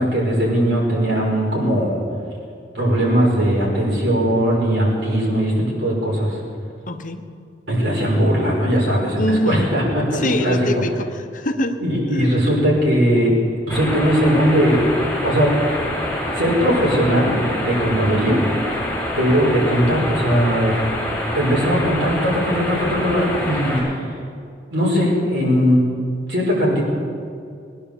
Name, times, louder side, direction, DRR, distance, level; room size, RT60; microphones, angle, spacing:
voice 1, 0.0-2.0 2.7-6.3 7.7-10.8 11.8-13.3 13.7-14.8 15.2-15.5 16.3-18.4 19.2-20.7 21.3-23.9 24.7-25.8 26.3-26.8, equal, 85° right, -4 dB, 5.4 m, -19 dB
voice 2, 6.9-7.2 9.1-9.7 10.1-11.8, left 1 dB, 45° left, 6 dB, 1.0 m, -24 dB
sound 1, 13.7-23.8, left 1 dB, 10° left, 5.2 m, -26 dB
19.5 x 10.0 x 7.2 m, 2.3 s
head